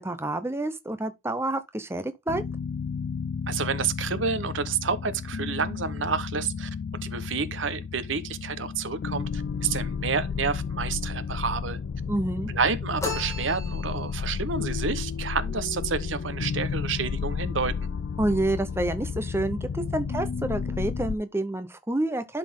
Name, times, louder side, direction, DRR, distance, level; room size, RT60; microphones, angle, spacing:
voice 1, 0.0-2.4 12.1-12.5 18.2-22.4, right 1 dB, 15° right, 0.7 m, -28 dB
sound 1, 2.3-21.2, left 6 dB, 60° left, 0.4 m, -32 dB
voice 2, 3.5-6.7 7.0-11.8 12.5-17.7, right 5 dB, 75° right, 0.9 m, -29 dB
sound 2, 13.0-14.3, left 2 dB, 15° left, 2.4 m, -35 dB
11.5 x 4.2 x 3.6 m
head